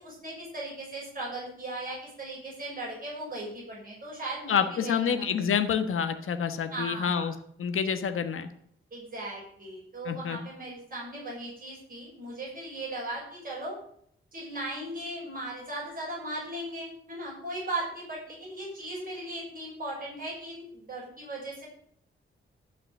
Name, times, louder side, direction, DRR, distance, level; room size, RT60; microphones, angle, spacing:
voice 1, 0.0-5.2 6.7-7.3 8.9-13.8 14.3-21.7, right 1 dB, 40° right, -4 dB, 6.2 m, -37 dB
voice 2, 4.5-8.5 10.0-10.4, left 7 dB, 80° left, 8 dB, 1.3 m, -28 dB
13.5 x 5.9 x 9.1 m, 0.66 s
wide cardioid pair, 105°, 21 cm